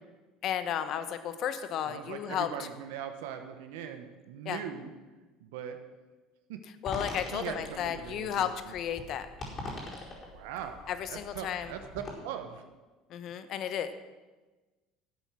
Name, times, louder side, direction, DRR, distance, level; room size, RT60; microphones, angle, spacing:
voice 1, 0.4-2.7 4.4-4.6 6.8-9.3 10.9-11.7 13.1-13.9, left 9 dB, 55° left, 11 dB, 1.0 m, -33 dB
voice 2, 1.9-4.9 5.4-5.8 6.5-6.6 7.3-8.7 10.3-10.8 11.1-12.6, right 9 dB, 80° right, 7 dB, 1.0 m, -40 dB
sound 1, 6.8-12.1, left 2 dB, 40° left, 4.7 m, -42 dB
12.5 x 8.2 x 6.1 m, 1.2 s
supercardioid pair, 85°, 0 cm